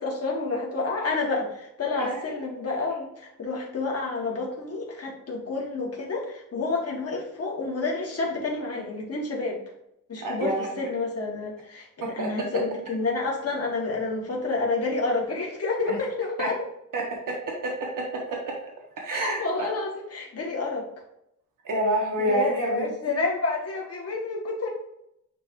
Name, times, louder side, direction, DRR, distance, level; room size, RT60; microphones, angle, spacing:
voice 1, 0.0-9.6 10.1-16.6 19.1-20.8 22.2-24.7, left 3 dB, 45° left, -1 dB, 2.0 m, -29 dB
voice 2, 2.0-2.4 10.2-10.9 12.0-12.3 15.9-16.0 16.4-16.5 16.9-17.4 17.6-18.5 19.0-19.7 21.6-23.3, right 1 dB, 75° right, -2 dB, 1.4 m, -29 dB
9.6 x 3.4 x 3.1 m, 0.78 s
wide cardioid pair, 160°, 33 cm